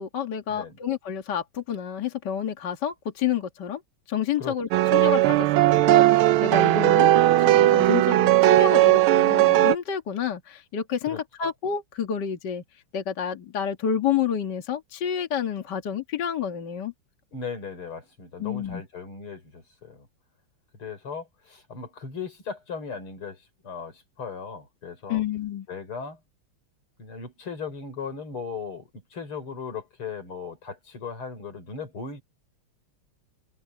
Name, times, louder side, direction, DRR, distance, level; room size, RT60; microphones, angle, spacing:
voice 1, 0.0-3.8 4.1-7.1 7.4-12.6 12.9-16.9 18.4-18.8 25.1-25.7, left 8 dB, 55° left, 2.2 m, -29 dB
voice 2, 4.4-4.8 11.0-11.2 17.3-20.1 20.8-25.2 25.7-26.2 27.0-32.2, left 5 dB, 80° left, 5.4 m, -37 dB
sound 1, 4.7-9.8, right 15 dB, 80° right, 1.5 m, -18 dB
omnidirectional pair, 2.4 m